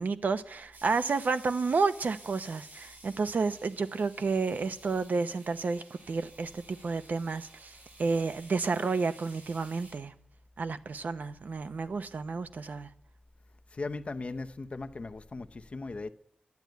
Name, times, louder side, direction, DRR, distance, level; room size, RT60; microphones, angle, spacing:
voice 1, 0.0-10.1 10.6-12.9, right 4 dB, 70° right, 0.8 m, -31 dB
sound 1, 0.7-9.9, right 2 dB, 85° right, 6.9 m, -54 dB
voice 2, 13.8-16.1, left 3 dB, 40° left, 0.7 m, -38 dB
12.0 x 10.5 x 9.3 m
wide cardioid pair, 125°, 3 cm